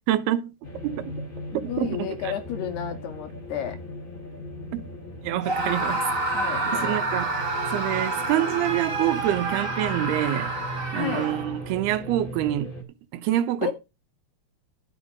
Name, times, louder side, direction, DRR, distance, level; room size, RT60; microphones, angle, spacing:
voice 1, 0.1-0.5 0.8-1.1 1.6-2.3 4.7-4.8 5.2-6.1 6.7-10.5 10.9-12.7 13.1-13.7, right 13 dB, 85° right, 3.0 m, -26 dB
sound 1, 0.6-12.8, right 1 dB, 15° left, 2.4 m, -38 dB
voice 2, 1.5-3.8 6.3-7.0 10.9-11.3 13.6-13.7, left 10 dB, 85° left, 4.2 m, -32 dB
Screaming, 5.4-11.7, right 2 dB, 20° right, 2.8 m, -28 dB
12.0 x 7.1 x 5.1 m
omnidirectional pair, 4.5 m